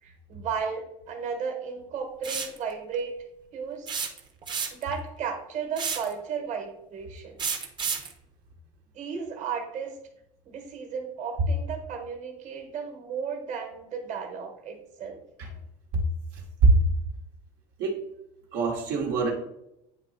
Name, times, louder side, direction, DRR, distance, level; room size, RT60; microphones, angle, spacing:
voice 1, 0.0-3.1 3.5-3.9 4.7-7.4 8.9-10.0 10.4-15.2, right 6 dB, 45° right, 3 dB, 1.5 m, -34 dB
sound 1, 2.2-2.6 3.9-4.9 5.8-6.1 7.4-8.1, right 6 dB, 25° right, 0.9 m, -30 dB
voice 2, 16.3-16.7 17.8-17.9 18.5-19.3, right 4 dB, 70° right, -1 dB, 1.3 m, -23 dB
8.9 x 3.0 x 4.2 m, 0.82 s
supercardioid pair, 125°, 17 cm